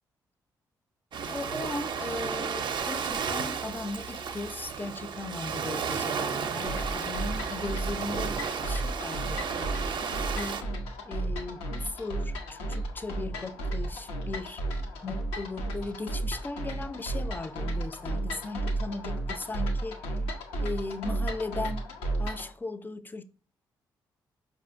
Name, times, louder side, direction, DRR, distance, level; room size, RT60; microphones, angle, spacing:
Ocean, 1.1-10.6, right 6 dB, 55° right, 0.5 m, -33 dB
voice 1, 1.3-9.7 10.3-10.7 11.0-14.6 15.0-20.2 20.6-21.9 22.2-23.2, left 2 dB, 20° left, 0.4 m, -37 dB
sound 1, 6.6-22.5, right 1 dB, 85° left, 0.6 m, -33 dB
4.8 x 2.5 x 2.5 m
hypercardioid pair, 45°, 9 cm